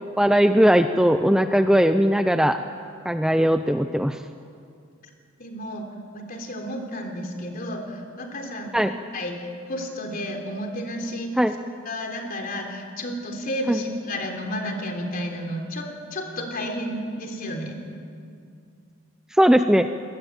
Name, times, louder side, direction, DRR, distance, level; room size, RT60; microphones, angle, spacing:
voice 1, 0.0-2.6 3.0-4.2 8.7-8.9 11.4-11.5 13.7-13.8 19.3-19.9, equal, 5° right, 8 dB, 0.6 m, -19 dB
voice 2, 5.4-5.9 6.1-11.4 11.9-17.8, equal, 45° left, 3 dB, 3.5 m, -32 dB
26.0 x 20.0 x 9.3 m, 2.4 s
head